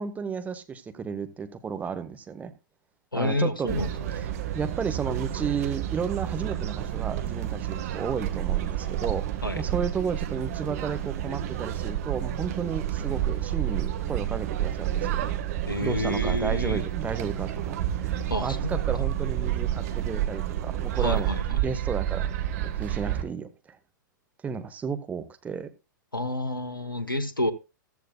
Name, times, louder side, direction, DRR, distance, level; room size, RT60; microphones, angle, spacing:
voice 1, 0.0-2.5 3.1-3.8 4.5-9.3 9.5-15.3 15.8-17.7 18.0-22.3 22.6-23.5 24.4-25.7, right 6 dB, 15° right, 1.1 m, -33 dB
voice 2, 3.1-4.3 9.4-9.6 15.6-16.8 18.3-18.8 21.0-21.6 26.1-27.5, left 1 dB, 85° left, 1.1 m, -29 dB
sound 1, 3.7-23.2, right 11 dB, 45° right, 1.5 m, -30 dB
14.5 x 13.0 x 2.3 m
figure-of-eight pair, 105°, 11 cm